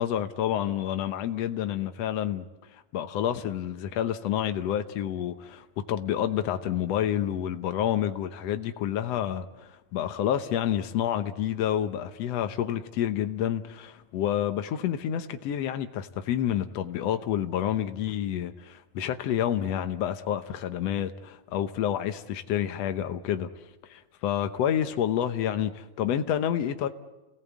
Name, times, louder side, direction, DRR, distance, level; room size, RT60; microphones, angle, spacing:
voice 1, 0.0-2.4 2.9-23.5 23.9-26.9, left 10 dB, 75° left, 1.5 m, -29 dB
29.5 x 18.5 x 8.4 m
omnidirectional pair, 4.1 m